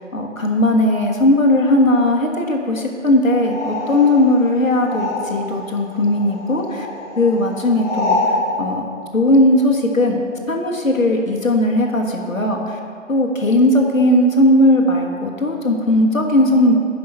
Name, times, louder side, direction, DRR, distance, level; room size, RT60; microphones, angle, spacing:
voice 1, 0.1-6.9 7.2-8.8 9.1-10.2 10.5-12.8 13.1-16.7, left 1 dB, 85° left, 2 dB, 1.5 m, -17 dB
sound 1, 3.4-5.6 5.9-8.4, left 2 dB, 10° left, 1.6 m, -26 dB
10.0 x 5.7 x 5.6 m, 2.3 s
figure-of-eight pair, 155°, 39 cm